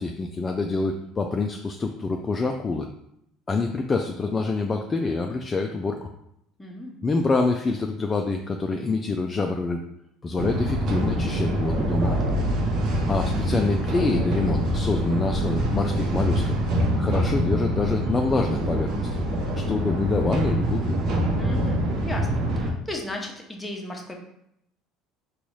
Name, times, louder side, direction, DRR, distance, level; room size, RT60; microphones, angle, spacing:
voice 1, 0.0-2.9 3.5-6.1 7.0-9.8 10.2-12.1 13.1-16.5 17.0-19.2 19.5-21.0, left 3 dB, 25° left, 3 dB, 0.3 m, -26 dB
voice 2, 6.6-7.0 12.0-12.2 21.4-24.2, left 1 dB, 10° left, 1 dB, 0.7 m, -35 dB
sound 1, 10.4-22.7, right 1 dB, 60° right, 0.6 m, -25 dB
3.9 x 2.3 x 3.1 m, 0.77 s
supercardioid pair, 90°, 0 cm